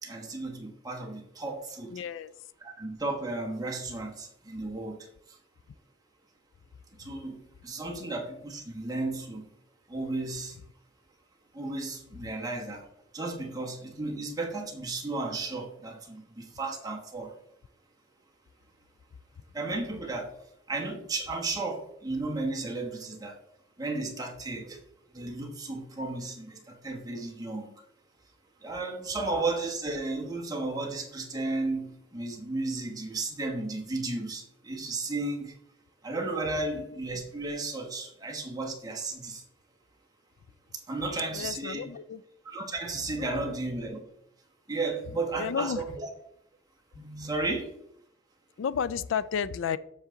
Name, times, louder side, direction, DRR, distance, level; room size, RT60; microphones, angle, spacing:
voice 1, 0.0-1.9 2.6-5.4 7.0-9.5 9.9-10.6 11.5-12.9 13.1-17.4 19.5-20.4 20.7-23.4 23.8-24.8 25.1-27.7 28.6-35.5 36.0-39.4 40.7-41.9 42.4-44.0 44.7-45.9 46.9-47.8, right 2 dB, 20° right, 0 dB, 1.2 m, -34 dB
voice 2, 1.9-2.3 7.0-7.1 7.8-8.1 41.3-42.2 43.2-43.5 45.4-45.8 48.6-49.8, left 7 dB, 70° left, 17 dB, 0.3 m, -32 dB
7.2 x 6.8 x 3.7 m, 0.74 s
head